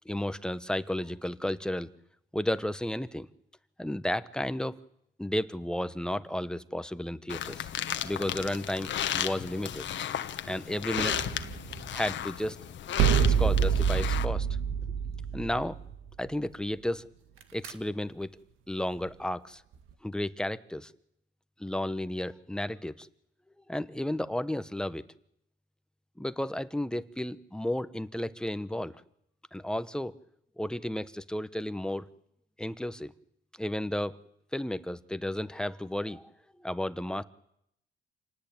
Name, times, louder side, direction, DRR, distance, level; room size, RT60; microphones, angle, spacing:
voice 1, 0.0-1.9 2.3-3.3 3.8-4.7 5.2-7.7 8.0-9.9 10.4-11.2 11.9-12.6 13.2-14.5 15.3-15.8 16.2-17.1 17.5-18.4 18.7-19.6 20.0-20.9 21.6-23.1 23.7-25.0 26.2-29.0 29.5-30.1 30.6-32.1 32.6-33.1 33.6-34.2 34.5-36.2 36.6-37.2, left 1 dB, 5° left, 13 dB, 1.2 m, -33 dB
sound 1, 7.3-14.2, left 10 dB, 70° left, 1.4 m, -34 dB
sound 2, 10.9-12.3 13.0-16.3 17.4-17.7, right 8 dB, 85° right, 2.0 m, -27 dB
27.5 x 19.0 x 8.9 m, 0.76 s
cardioid pair, 90°, 20 cm